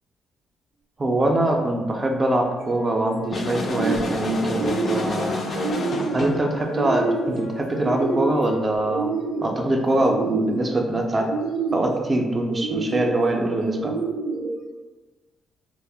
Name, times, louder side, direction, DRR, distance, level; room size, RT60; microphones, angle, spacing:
voice 1, 1.0-5.4 6.1-9.1 9.4-11.3 11.7-13.9, right 1 dB, 30° right, 2 dB, 0.4 m, -23 dB
Wind instrument woodwind instrument, 2.0-10.0, left 3 dB, 90° left, 0.7 m, -42 dB
sound 1, 2.6-3.1 3.5-4.2 4.4-5.2 5.5-6.3 6.7-7.4 7.7-8.5 8.9-9.6 10.0-10.7 11.2-12.0 12.5-13.2 13.7-14.5, right 4 dB, 90° right, 0.4 m, -28 dB
sound 2, 3.3-6.5, left 2 dB, 50° left, 0.3 m, -28 dB
2.3 x 2.0 x 3.4 m, 1.2 s
cardioid pair, 90°, 0 cm